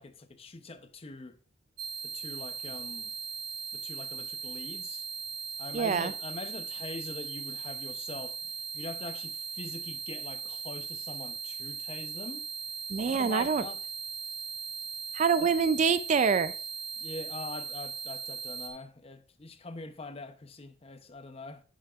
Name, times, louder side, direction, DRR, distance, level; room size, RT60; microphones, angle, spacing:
voice 1, 0.0-1.4 2.0-3.1 3.7-5.0 5.6-12.5 13.1-13.8 15.4-15.5 17.0-21.6, left 3 dB, 30° left, 0.6 m, -43 dB
sound 1, 1.8-18.7, right 6 dB, 55° right, 1.1 m, -39 dB
voice 2, 5.7-6.1 12.9-13.6 15.1-16.5, right 5 dB, 40° right, 0.3 m, -25 dB
10.0 x 7.3 x 2.4 m
head